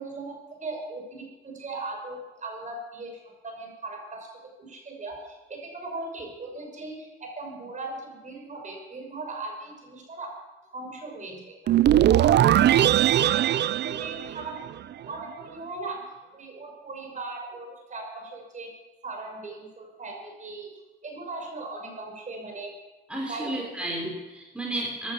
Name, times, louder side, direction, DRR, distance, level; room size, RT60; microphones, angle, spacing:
voice 1, 0.0-4.3 4.6-10.3 10.7-11.8 12.1-12.9 13.2-14.6 15.1-16.0 16.3-18.7 19.0-20.7 21.0-22.7 23.3-23.8, right 3 dB, 40° right, 1 dB, 5.9 m, -38 dB
sound 1, 11.7-14.9, right 12 dB, 60° right, 0.5 m, -20 dB
voice 2, 23.1-25.1, right 1 dB, 5° right, -1 dB, 4.0 m, -32 dB
16.0 x 11.0 x 7.3 m, 1.1 s
cardioid pair, 90°, 20 cm